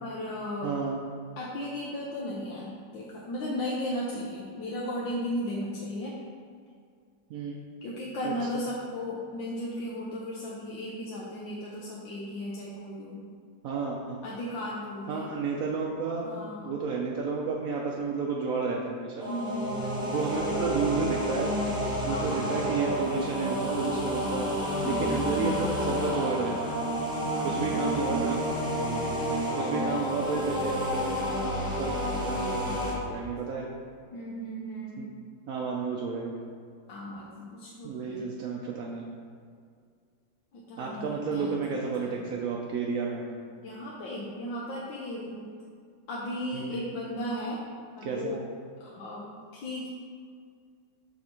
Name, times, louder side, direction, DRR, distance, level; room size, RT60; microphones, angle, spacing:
voice 1, 0.0-0.7 1.4-6.2 7.8-13.2 14.2-15.3 16.2-16.7 19.3-20.7 22.0-22.9 24.8-25.5 27.1-28.0 28.7-29.2 34.1-35.2 36.9-38.3 40.5-42.3 43.6-45.5 46.1-47.6 47.9-48.4 48.8-49.9, left 1 dB, 75° left, -5 dB, 1.5 m, -36 dB
voice 2, 0.6-1.0 7.3-7.6 8.2-8.3 13.6-14.2 15.1-16.3 16.6-19.3 20.1-21.5 22.0-26.8 27.4-28.4 29.6-33.7 35.0-35.1 35.5-36.4 37.8-39.0 40.8-43.2 46.5-46.7 48.0-48.4, right 4 dB, 75° right, -2 dB, 0.8 m, -31 dB
sound 1, 19.2-32.9, equal, 5° right, 0.6 m, -30 dB
6.1 x 4.3 x 4.3 m, 2.2 s
omnidirectional pair, 2.1 m